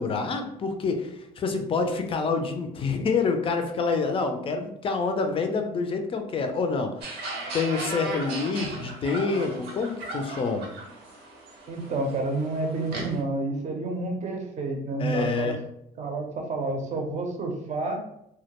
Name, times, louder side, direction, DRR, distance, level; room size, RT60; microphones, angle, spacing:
voice 1, 0.0-7.2 7.5-10.7 15.0-15.6, left 4 dB, 35° left, 6 dB, 0.4 m, -27 dB
sound 1, 7.0-13.2, right 2 dB, 85° right, 0.7 m, -37 dB
voice 2, 11.7-15.6 16.0-18.0, right 2 dB, 45° right, 2 dB, 0.6 m, -29 dB
2.2 x 2.1 x 2.8 m, 0.78 s
cardioid pair, 110°, 17 cm